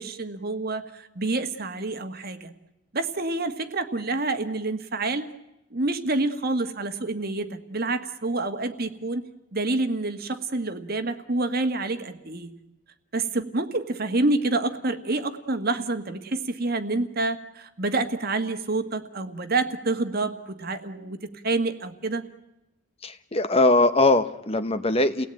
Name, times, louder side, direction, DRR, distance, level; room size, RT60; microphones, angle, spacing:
voice 1, 0.0-2.5 2.9-5.3 5.7-12.6 13.1-22.3, right 2 dB, 50° right, 9 dB, 1.6 m, -28 dB
voice 2, 23.0-25.3, left 2 dB, 30° left, 11 dB, 1.0 m, -21 dB
29.5 x 18.0 x 9.0 m, 0.92 s
head